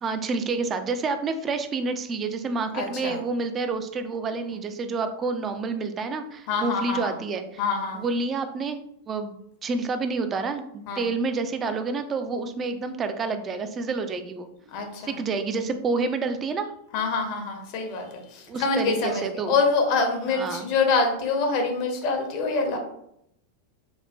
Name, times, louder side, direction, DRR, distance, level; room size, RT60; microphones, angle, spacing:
voice 1, 0.0-7.6 7.9-8.8 9.1-14.5 15.0-16.7 18.5-19.5 20.3-20.7, right 4 dB, 25° right, 8 dB, 0.3 m, -29 dB
voice 2, 2.7-3.2 6.5-7.1 7.6-8.0 10.9-11.0 14.7-15.1 16.9-22.8, left 4 dB, 45° left, 3 dB, 0.6 m, -25 dB
4.0 x 2.1 x 2.2 m, 0.75 s
figure-of-eight pair, 90°, 0 cm